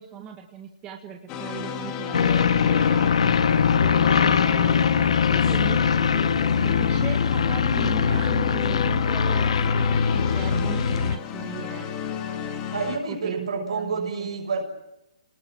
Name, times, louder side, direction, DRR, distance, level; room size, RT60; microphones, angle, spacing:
voice 1, 0.0-3.5 3.9-4.9 5.3-6.2 6.6-9.8 10.1-11.9 13.1-14.3, right 8 dB, 15° right, 3 dB, 1.7 m, -38 dB
sound 1, 1.3-13.0, left 7 dB, 20° left, 2.2 m, -32 dB
sound 2, 2.1-11.2, left 6 dB, 70° left, 1.2 m, -21 dB
sound 3, 2.7-8.3, left 2 dB, 5° left, 3.3 m, -37 dB
voice 2, 12.7-14.6, right 4 dB, 70° right, 4 dB, 6.5 m, -28 dB
28.5 x 19.5 x 7.5 m, 0.88 s
hypercardioid pair, 160°, 3 cm